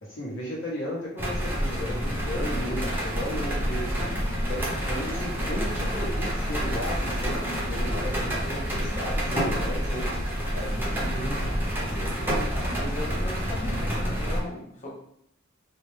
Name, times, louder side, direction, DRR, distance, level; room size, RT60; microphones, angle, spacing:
voice 1, 0.0-12.4 12.7-12.8, equal, 60° left, -5 dB, 1.1 m, -35 dB
sound 1, 1.2-14.4, equal, 10° right, 0.6 m, -28 dB
voice 2, 12.5-14.9, left 1 dB, 35° left, -2 dB, 0.7 m, -37 dB
2.7 x 2.1 x 3.1 m, 0.72 s
head